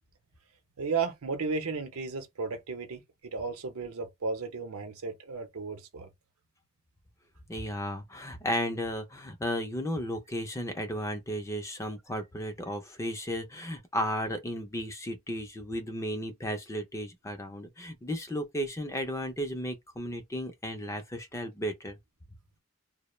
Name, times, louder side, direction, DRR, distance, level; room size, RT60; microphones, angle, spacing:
voice 1, 0.8-3.0 3.3-6.1, right 4 dB, 90° right, 0.7 m, -34 dB
voice 2, 7.5-22.0, equal, 15° left, 0.4 m, -34 dB
2.2 x 2.0 x 3.0 m
head